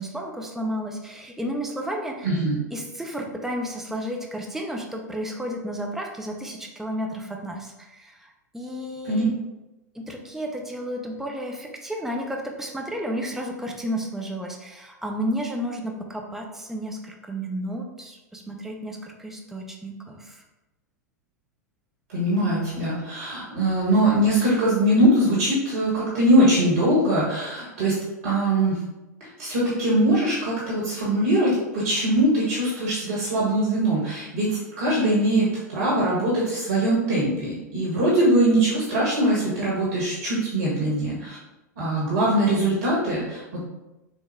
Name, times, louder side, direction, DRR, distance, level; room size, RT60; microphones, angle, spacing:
voice 1, 0.0-2.3 2.7-9.3 9.9-20.4, equal, 5° right, 1 dB, 0.6 m, -32 dB
voice 2, 2.2-2.5 9.0-9.3 22.1-27.9 28.2-28.8 29.2-41.4 41.8-43.6, right 1 dB, 60° right, -6 dB, 1.2 m, -22 dB
5.9 x 2.0 x 3.3 m, 1.0 s
figure-of-eight pair, 95°, 9 cm